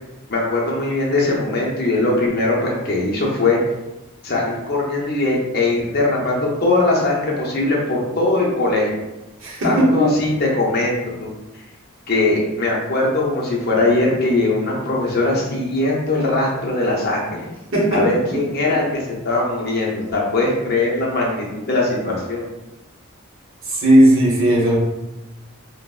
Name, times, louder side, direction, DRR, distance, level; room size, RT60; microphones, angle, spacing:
voice 1, 0.3-3.6 4.2-9.0 9.6-11.3 12.1-17.4 17.9-22.4, left 2 dB, 45° left, -2 dB, 0.5 m, -20 dB
voice 2, 9.4-10.1 17.7-18.0 23.6-24.8, right 1 dB, 70° right, -3 dB, 0.8 m, -15 dB
3.3 x 2.0 x 2.2 m, 1.0 s
head